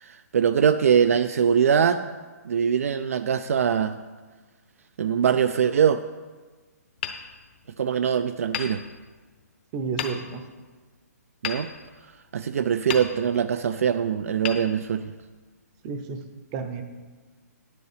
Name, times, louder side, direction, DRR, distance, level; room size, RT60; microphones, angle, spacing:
voice 1, 0.0-2.1 2.5-3.9 5.0-6.0 7.8-8.8 11.4-11.7 12.3-15.1, right 7 dB, 55° right, 10 dB, 0.4 m, -22 dB
Hammer, 7.0-8.0 8.5-9.4 10.0-10.6 11.4-12.4 12.9-13.6 14.4-15.4, left 8 dB, 35° left, 0.8 m, -36 dB
voice 2, 9.7-10.4 15.8-16.2 16.5-16.8, right 5 dB, 20° right, 7 dB, 0.7 m, -31 dB
9.8 x 8.1 x 5.0 m, 1.3 s
hypercardioid pair, 165°, 9 cm